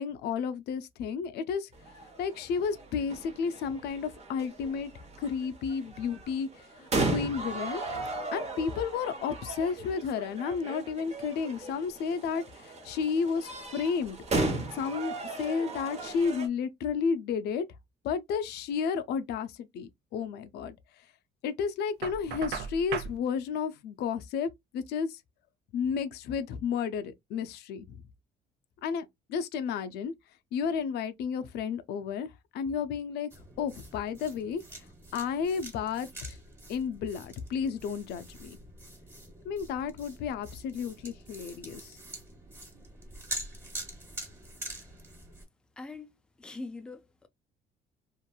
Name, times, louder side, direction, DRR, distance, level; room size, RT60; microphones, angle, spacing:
voice 1, 0.0-1.7 2.2-4.9 5.2-14.2 14.7-17.6 18.0-20.8 21.4-25.2 25.7-28.0 28.8-30.1 30.5-33.3 33.6-34.6 35.1-36.4 36.7-38.6 39.4-42.0, left 6 dB, 75° left, 0.5 m, -32 dB
sound 1, 1.8-16.5, right 2 dB, 40° right, 0.8 m, -36 dB
Knock, 22.0-23.2, right 7 dB, 75° right, 0.6 m, -36 dB
sound 2, 33.3-45.4, right 1 dB, 15° right, 1.2 m, -45 dB
voice 2, 45.8-47.3, left 3 dB, 5° left, 0.4 m, -43 dB
2.9 x 2.5 x 2.2 m
cardioid pair, 110°, 17 cm